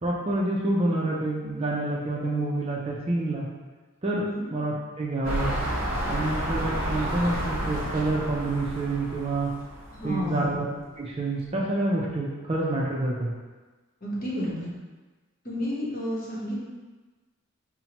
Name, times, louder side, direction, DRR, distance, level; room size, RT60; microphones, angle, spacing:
voice 1, 0.0-3.5 4.0-4.2 4.5-5.5 6.1-9.5 10.0-10.7 11.0-13.3, right 2 dB, 25° right, -4 dB, 0.4 m, -28 dB
sound 1, 5.2-10.2 10.9-11.0, equal, 45° right, 1.0 m, -30 dB
voice 2, 10.0-10.6 14.0-14.7 15.4-16.6, equal, 40° left, -6 dB, 0.9 m, -30 dB
5.4 x 2.1 x 2.9 m, 1.3 s
head